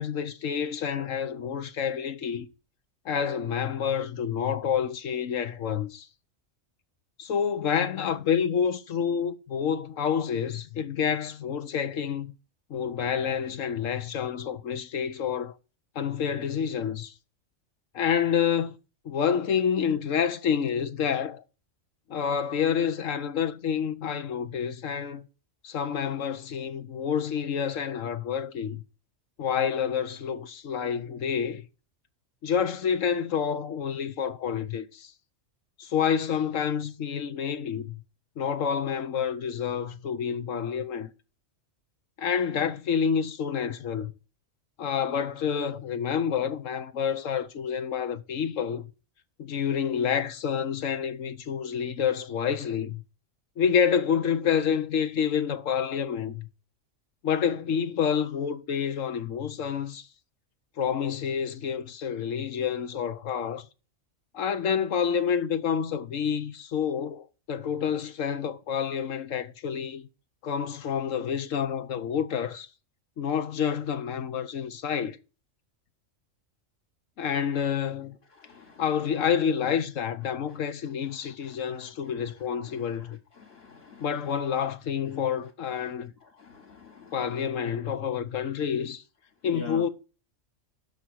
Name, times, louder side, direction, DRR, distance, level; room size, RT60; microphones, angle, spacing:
voice 1, 0.0-2.5 3.0-6.1 7.2-12.3 12.7-15.6 15.9-17.1 17.9-18.8 19.0-21.4 22.1-25.2 25.6-28.8 29.4-31.6 32.4-35.1 35.8-38.0 38.4-41.1 42.2-44.1 44.8-48.9 49.4-53.0 53.6-56.5 57.2-60.1 60.8-63.7 64.3-70.1 70.4-72.7 73.2-75.2 77.2-78.1 78.8-83.2 84.0-86.1 87.1-89.0 89.4-89.9, left 7 dB, 80° left, 1.3 m, -28 dB
voice 2, 78.4-78.8 83.4-84.0 86.4-87.2 89.5-89.8, left 5 dB, 55° left, 1.3 m, -43 dB
7.2 x 5.9 x 6.3 m
omnidirectional pair, 1.3 m